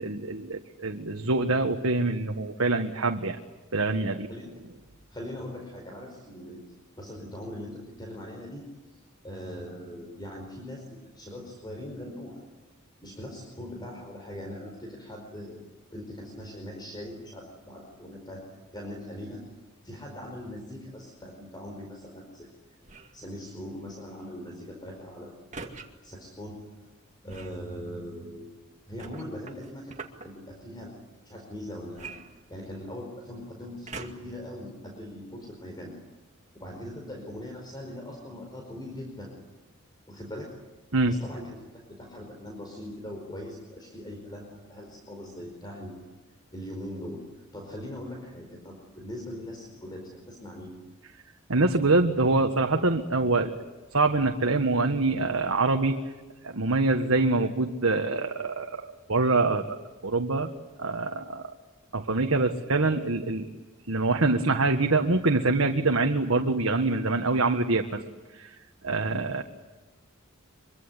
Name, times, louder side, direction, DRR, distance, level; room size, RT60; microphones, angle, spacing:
voice 1, 0.0-3.4 3.7-4.3 40.9-41.1 51.5-53.5 53.9-56.0 56.4-59.8 60.0-60.5 60.8-61.5 61.9-63.5 63.9-68.0 68.3-68.5 68.8-69.4, right 3 dB, 75° right, 4 dB, 1.6 m, -25 dB
voice 2, 5.1-6.6 7.0-8.6 8.9-12.4 13.0-15.6 15.9-18.4 18.7-19.4 19.8-22.5 23.1-25.7 26.0-26.6 27.2-28.5 28.9-31.0 31.2-32.1 32.5-35.9 36.5-39.3 40.1-40.5 41.1-46.1 46.5-50.7 69.0-69.2, left 1 dB, 20° left, 1 dB, 4.9 m, -41 dB
sound 1, 22.8-23.2 25.5-25.9 27.3-27.6 29.0-30.3 31.9-32.9 33.9-34.4 35.1-35.2, right 4 dB, 35° right, 2.2 m, -42 dB
25.0 x 23.5 x 9.9 m, 1.2 s
head